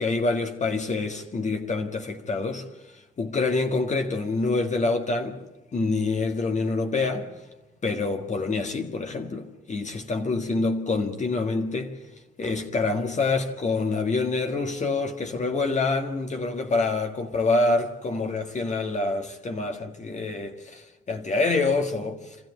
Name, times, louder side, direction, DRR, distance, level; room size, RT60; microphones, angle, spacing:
voice 1, 0.0-2.6 3.2-5.4 5.7-7.3 7.8-11.9 12.4-22.5, left 3 dB, 35° left, 1.6 m, -26 dB
26.0 x 14.5 x 9.4 m
cardioid pair, 90°, 20 cm